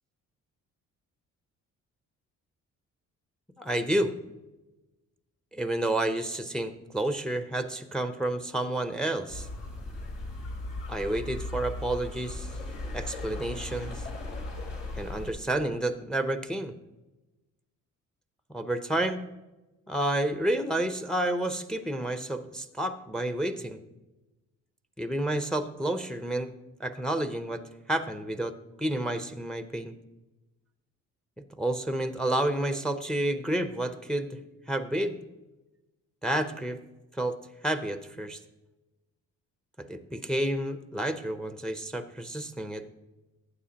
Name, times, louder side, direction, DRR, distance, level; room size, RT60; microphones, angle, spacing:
voice 1, 3.6-4.1 5.5-9.5 10.9-12.5 12.9-14.0 14.9-16.7 18.5-19.2 19.9-23.8 25.0-26.5 26.8-27.6 27.9-29.9 31.6-34.4 34.7-35.2 36.2-36.8 37.1-37.4 37.6-38.4 39.8-42.8, right 1 dB, ahead, 10 dB, 0.6 m, -30 dB
sound 1, 9.3-15.3, left 2 dB, 75° left, 3.4 m, -37 dB
12.5 x 8.4 x 2.9 m, 1.1 s
cardioid pair, 90°, 30 cm